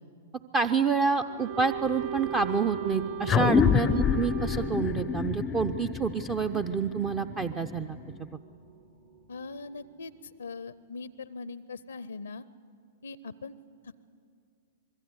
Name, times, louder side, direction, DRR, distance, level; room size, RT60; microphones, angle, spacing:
voice 1, 0.5-8.0, right 5 dB, 20° right, 9 dB, 0.6 m, -28 dB
sound 1, 0.7-10.5, right 5 dB, 70° right, 3.5 m, -47 dB
Wind instrument woodwind instrument, 1.4-5.4, right 7 dB, 45° right, 3.7 m, -38 dB
sound 2, 3.3-8.2, left 7 dB, 20° left, 0.5 m, -27 dB
voice 2, 9.3-12.4 13.0-13.6 13.8-14.0, left 4 dB, 75° left, 17 dB, 0.6 m, -41 dB
26.0 x 22.5 x 8.1 m, 2.3 s
figure-of-eight pair, 105°, 0 cm